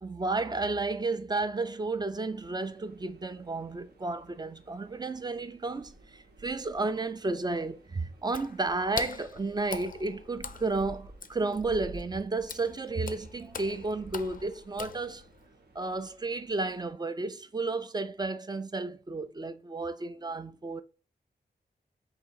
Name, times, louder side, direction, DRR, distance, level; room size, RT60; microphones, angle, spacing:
voice 1, 0.0-15.2 15.7-20.8, right 3 dB, 25° right, 0.4 m, -32 dB
sound 1, 2.2-16.9, right 2 dB, 65° right, 0.8 m, -53 dB
Water / Splash splatter, 8.2-15.5, left 6 dB, 50° left, 0.4 m, -43 dB
3.6 x 2.7 x 4.5 m
wide cardioid pair, 105°, 18 cm